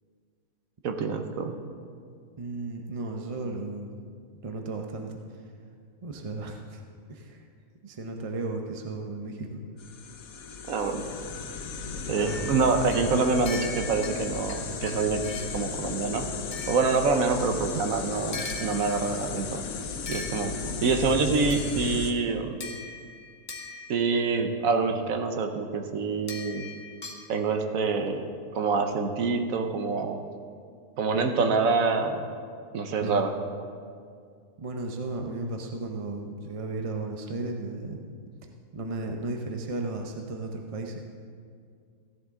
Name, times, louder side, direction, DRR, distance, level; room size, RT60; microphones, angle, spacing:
voice 1, 0.8-1.6 10.7-11.1 12.1-15.2 15.5-16.3 16.7-19.6 20.1-20.6 20.8-22.6 23.9-26.7 27.3-28.3 28.5-30.2 31.0-32.3 32.7-33.3, right 4 dB, 70° right, 6 dB, 1.2 m, -26 dB
voice 2, 2.4-3.9 4.4-5.2 6.0-6.8 7.1-7.5 7.8-9.6 12.0-12.4 33.0-33.2 34.6-38.0 38.7-41.1, right 3 dB, 35° right, 2 dB, 0.5 m, -34 dB
sound 1, 9.8-22.1, left 5 dB, 70° left, 1.2 m, -35 dB
sound 2, 12.3-15.7 16.5-17.6 18.3-19.3 20.1-20.9 21.5-22.1 22.6-24.3 26.3-27.3, left 3 dB, 35° left, 1.2 m, -41 dB
15.5 x 10.5 x 3.6 m, 2.2 s
omnidirectional pair, 1.5 m